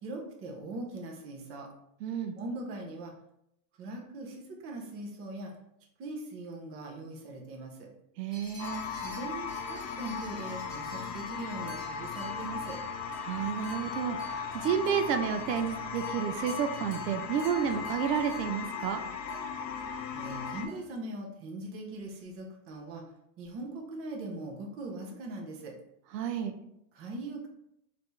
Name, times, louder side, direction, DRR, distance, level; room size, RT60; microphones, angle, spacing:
voice 1, 0.0-1.7 2.4-3.1 3.8-5.5 6.0-7.9 8.9-12.8 20.1-23.0 23.4-25.7 26.9-27.5, right 2 dB, 30° right, 0 dB, 0.7 m, -40 dB
voice 2, 2.0-2.4 8.2-8.8 13.2-19.0 26.1-26.5, right 8 dB, 80° right, 7 dB, 0.6 m, -31 dB
sound 1, 8.3-20.9, left 1 dB, 20° left, 1.4 m, -52 dB
sound 2, 8.6-20.7, left 5 dB, 90° left, 0.7 m, -37 dB
4.2 x 2.8 x 3.2 m, 0.78 s
supercardioid pair, 145°, 48 cm